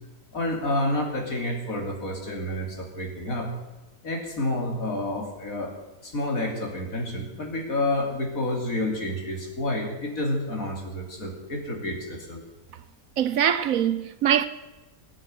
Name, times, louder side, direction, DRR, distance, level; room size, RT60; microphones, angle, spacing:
voice 1, 0.3-3.5 4.0-5.7 6.0-12.4, left 1 dB, 65° left, 3.6 m, -29 dB
voice 2, 13.2-14.5, right 9 dB, 70° right, 1.1 m, -23 dB
20.0 x 9.0 x 7.8 m
omnidirectional pair, 1.6 m